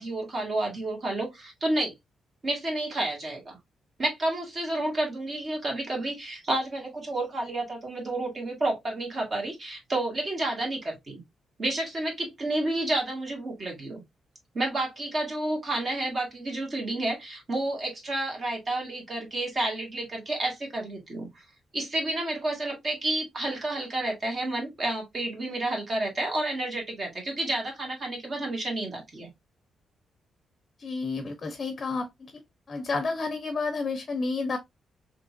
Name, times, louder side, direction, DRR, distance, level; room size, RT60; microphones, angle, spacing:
voice 1, 0.0-1.9 2.4-3.6 4.0-11.2 11.6-14.0 14.5-21.3 21.7-29.3, right 2 dB, 40° right, 1.8 m, -30 dB
voice 2, 30.8-32.3 32.7-34.6, left 3 dB, 40° left, 0.6 m, -30 dB
3.6 x 2.8 x 2.5 m
cardioid pair, 110°, 0 cm